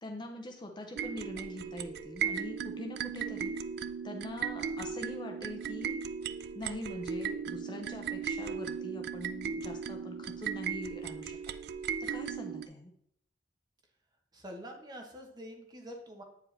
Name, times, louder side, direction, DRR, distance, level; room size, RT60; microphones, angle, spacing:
voice 1, 0.0-3.6 4.0-6.0 6.5-11.5 12.0-12.9, left 1 dB, 25° left, 3 dB, 0.6 m, -43 dB
sound 1, 0.9-12.7, right 7 dB, 60° right, 0.3 m, -37 dB
voice 2, 14.3-16.2, equal, 20° right, 2 dB, 1.0 m, -46 dB
8.6 x 4.7 x 3.3 m, 0.72 s
head